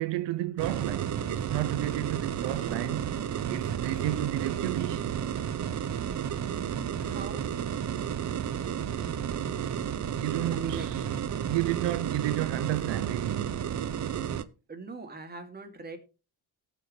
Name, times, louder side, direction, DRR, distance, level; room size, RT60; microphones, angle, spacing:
voice 1, 0.0-5.2 10.1-11.0 11.4-13.8, right 15 dB, 70° right, 0.7 m, -32 dB
sound 1, 0.6-14.4, right 8 dB, 40° right, 0.8 m, -32 dB
Sliding door, 0.7-5.6, equal, 25° left, 3.0 m, -52 dB
voice 2, 7.0-7.5 10.5-10.9 14.7-16.0, right 4 dB, 20° right, 2.5 m, -41 dB
18.0 x 6.7 x 3.2 m
cardioid pair, 125°, 44 cm